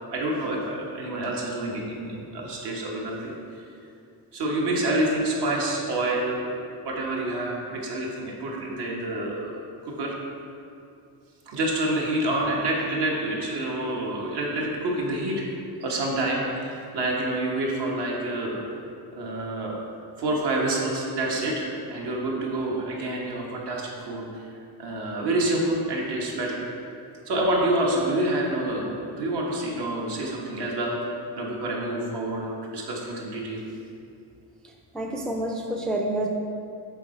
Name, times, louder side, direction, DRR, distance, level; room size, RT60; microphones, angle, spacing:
voice 1, 0.1-3.3 4.3-6.5 6.8-9.6 9.8-10.2 11.5-15.4 15.8-18.6 19.1-19.8 20.2-24.4 24.8-26.6 27.3-31.0 31.3-33.6, right 1 dB, 70° right, -2 dB, 1.4 m, -27 dB
voice 2, 34.9-36.3, right 1 dB, ahead, 1 dB, 0.3 m, -28 dB
7.2 x 3.9 x 4.4 m, 2.5 s
cardioid pair, 130°, 41 cm